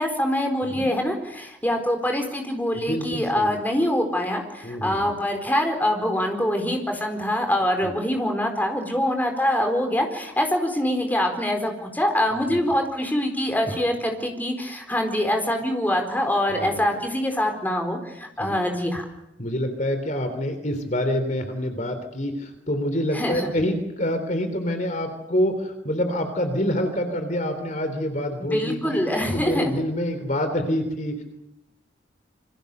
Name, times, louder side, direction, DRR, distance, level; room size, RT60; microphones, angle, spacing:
voice 1, 0.0-19.0 23.1-23.5 28.4-29.7, left 1 dB, 10° left, 4 dB, 4.4 m, -24 dB
voice 2, 2.7-3.5 4.6-5.1 7.8-8.0 12.5-12.6 16.6-16.9 18.4-18.6 19.4-29.0 29.3-31.2, equal, 40° left, 7 dB, 3.5 m, -27 dB
27.5 x 25.0 x 6.8 m, 0.85 s
head